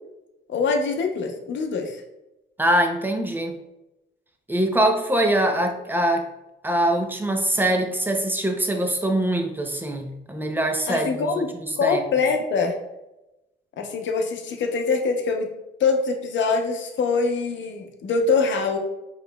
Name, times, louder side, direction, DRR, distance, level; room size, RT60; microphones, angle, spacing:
voice 1, 0.5-2.0 10.9-11.5 11.8-12.7 13.8-15.5 15.8-18.8, left 4 dB, 70° left, 3 dB, 0.7 m, -24 dB
voice 2, 2.6-3.6 4.5-6.3 6.6-11.3 11.6-12.0, right 1 dB, 10° right, 4 dB, 0.6 m, -23 dB
4.9 x 3.1 x 2.2 m, 0.95 s
cardioid pair, 90°, 20 cm